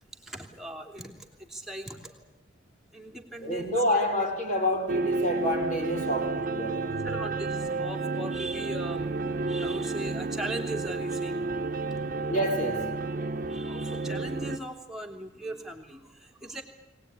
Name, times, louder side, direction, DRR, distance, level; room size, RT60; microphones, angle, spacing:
voice 1, 0.2-2.3 2.9-3.8 7.0-9.0 9.5-11.4 13.5-16.6, right 1 dB, ahead, 2 dB, 3.1 m, -39 dB
voice 2, 3.4-7.2 12.3-12.9, equal, 45° left, 1 dB, 5.3 m, -28 dB
sound 1, 4.9-14.6, right 3 dB, 45° right, 1.1 m, -31 dB
23.0 x 19.0 x 9.8 m, 0.99 s
head